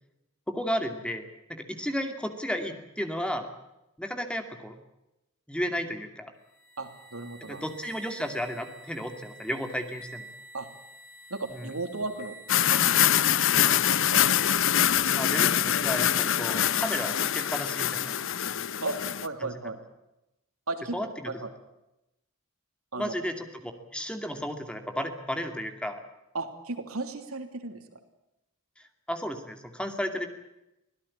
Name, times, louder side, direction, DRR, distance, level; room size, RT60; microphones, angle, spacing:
voice 1, 0.5-3.5 4.0-4.8 5.5-6.3 7.5-10.3 11.5-11.7 15.2-18.1 19.4-19.5 20.9-21.1 23.0-23.4 23.6-26.0 29.1-30.3, equal, 5° left, 6 dB, 2.4 m, -33 dB
sound 1, 6.4-18.5, left 2 dB, 45° left, 5.2 m, -50 dB
voice 2, 6.8-7.7 10.5-10.7 11.3-14.7 18.8-19.8 20.7-21.0 21.3-21.5 22.9-23.1 26.3-28.0, right 2 dB, 90° right, 7 dB, 3.2 m, -36 dB
sound 2, 12.5-19.3, left 10 dB, 65° left, 0.9 m, -24 dB
25.0 x 17.0 x 8.6 m, 0.91 s
head